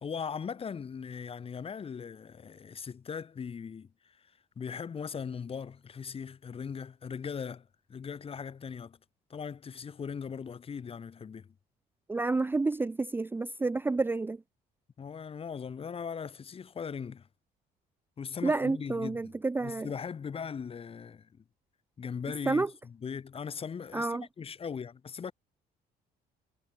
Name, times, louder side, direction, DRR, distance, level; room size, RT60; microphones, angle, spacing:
voice 1, 0.0-4.3 4.6-9.0 9.3-11.5 15.0-17.3 18.2-21.4 22.0-25.3, left 6 dB, 35° left, 2.0 m, -39 dB
voice 2, 12.1-14.4 18.4-19.9 22.5-22.7 23.9-24.3, right 3 dB, 10° right, 0.5 m, -29 dB
cardioid pair, 110°, 17 cm